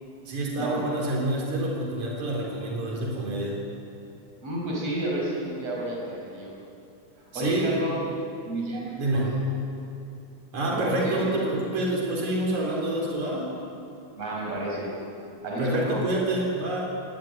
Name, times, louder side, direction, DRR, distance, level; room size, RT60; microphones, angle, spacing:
voice 1, 0.3-3.5 7.3-7.8 9.0-9.3 10.5-13.5 15.6-16.8, right 1 dB, 75° right, -2 dB, 5.3 m, -27 dB
voice 2, 4.4-6.5 7.3-8.0 8.4-9.4 10.8-11.2 14.2-14.9 15.4-16.0, right 1 dB, 60° right, -3 dB, 6.6 m, -30 dB
20.0 x 19.0 x 9.3 m, 2.6 s
omnidirectional pair, 3.4 m